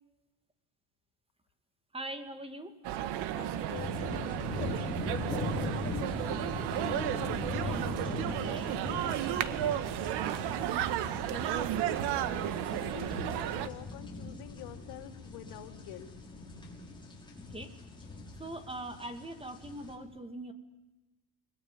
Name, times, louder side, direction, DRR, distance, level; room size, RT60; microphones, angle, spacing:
voice 1, 1.9-2.8 7.6-8.8 10.4-10.7 11.3-12.4 17.5-17.8 18.4-20.5, right 1 dB, 15° right, 9 dB, 2.4 m, -42 dB
sound 1, 2.8-13.7, right 11 dB, 85° right, 1.9 m, -33 dB
voice 2, 3.3-3.9 4.5-5.0 12.5-16.1, left 12 dB, 85° left, 7 dB, 3.1 m, -47 dB
sound 2, 3.7-19.9, left 3 dB, 10° left, 6.0 m, -40 dB
30.0 x 21.5 x 9.2 m, 1.1 s
cardioid pair, 145°, 39 cm